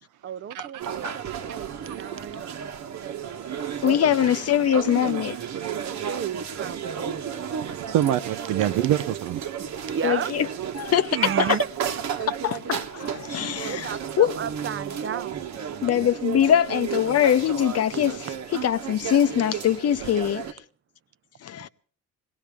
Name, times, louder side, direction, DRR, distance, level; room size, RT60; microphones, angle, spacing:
voice 1, 0.2-2.6 5.8-7.5 9.9-10.3 11.1-12.3 13.6-15.7, right 8 dB, 45° right, 0.7 m, -33 dB
sound 1, 0.8-20.5, right 8 dB, 65° right, 1.2 m, -33 dB
voice 2, 3.8-5.4 10.0-10.5 10.8-11.2 11.5-11.6 12.4-14.3 15.8-20.4 21.4-21.7, left 10 dB, 55° left, 0.7 m, -23 dB
voice 3, 7.6-9.4, right 12 dB, 90° right, 0.8 m, -25 dB
21.0 x 17.0 x 3.5 m
cardioid pair, 90°, 30 cm